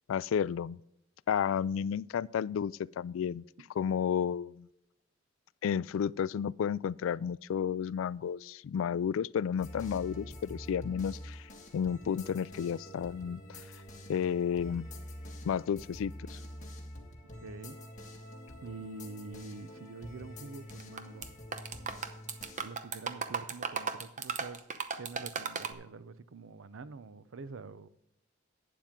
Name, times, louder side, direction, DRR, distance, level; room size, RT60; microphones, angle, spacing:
voice 1, 0.1-0.8 1.3-3.4 3.8-4.7 5.6-11.5 11.7-13.6 14.1-14.9 15.5-16.4, left 8 dB, 85° left, 0.3 m, -32 dB
sound 1, 9.6-22.8, left 1 dB, 40° left, 1.8 m, -46 dB
voice 2, 17.4-17.8 18.6-21.3 22.6-24.7 24.9-27.9, right 3 dB, 85° right, 0.6 m, -46 dB
sound 2, 20.7-21.3 21.5-25.7, right 6 dB, 40° right, 0.8 m, -36 dB
11.5 x 9.3 x 3.7 m
head